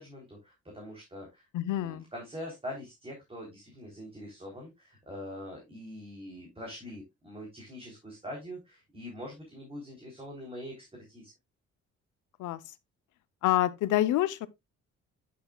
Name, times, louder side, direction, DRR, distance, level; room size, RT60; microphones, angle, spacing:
voice 1, 0.0-1.5 1.7-11.3, equal, 20° right, 3.6 m, -43 dB
voice 2, 1.5-2.0 12.4-12.6 13.4-14.5, left 13 dB, 80° left, 0.8 m, -27 dB
10.5 x 6.8 x 2.4 m
cardioid pair, 90°, 30 cm